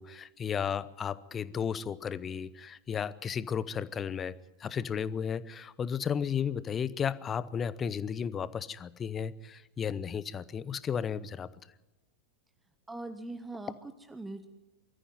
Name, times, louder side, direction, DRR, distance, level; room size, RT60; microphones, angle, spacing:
voice 1, 0.0-11.5, left 7 dB, 25° left, 18 dB, 0.8 m, -34 dB
voice 2, 12.9-14.5, right 2 dB, 10° right, 9 dB, 1.2 m, -41 dB
22.5 x 14.0 x 9.4 m, 1.0 s
figure-of-eight pair, 90°, 0 cm